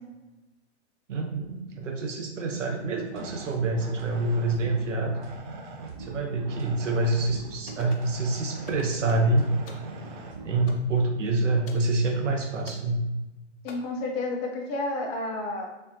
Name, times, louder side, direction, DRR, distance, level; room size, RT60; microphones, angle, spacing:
voice 1, 1.1-5.2 6.0-9.5 10.4-13.0, right 2 dB, 90° right, 2 dB, 0.6 m, -26 dB
sound 1, 3.1-10.7, right 3 dB, 40° right, 0.6 m, -41 dB
sound 2, 7.7-8.1 8.7-9.3 9.7-9.9 10.7-10.9 11.7-11.9 12.7-12.9 13.7-13.8, left 4 dB, 50° left, 0.6 m, -44 dB
voice 2, 13.6-15.7, left 2 dB, 15° left, 0 dB, 0.3 m, -30 dB
3.3 x 2.5 x 2.7 m, 1.1 s
hypercardioid pair, 120°, 36 cm